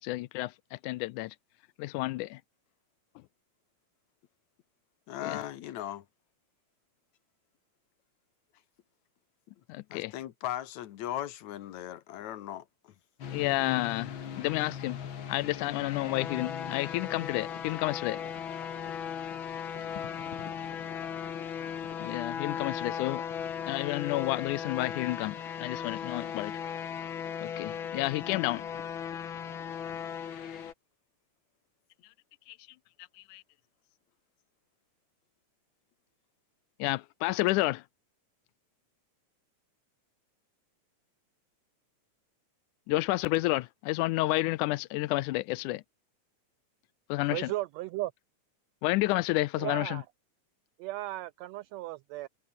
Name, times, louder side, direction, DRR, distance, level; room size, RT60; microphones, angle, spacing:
voice 1, 0.0-1.4 1.8-2.4 3.2-3.3 5.2-5.4 9.7-10.1 13.3-15.0 15.3-18.2 22.0-23.2 23.6-26.6 27.4-28.7 32.5-32.6 33.0-33.4 36.8-37.8 42.9-45.8 47.1-47.5 48.8-50.0, left 19 dB, 90° left, 2.1 m, -30 dB
voice 2, 5.1-6.1 9.9-12.9, left 12 dB, 70° left, 2.4 m, -38 dB
sound 1, 13.2-30.7, left 8 dB, 45° left, 2.1 m, -37 dB
voice 3, 47.3-48.1 49.6-50.0 50.8-52.3, right 17 dB, 85° right, 1.5 m, -35 dB
omnidirectional pair, 3.5 m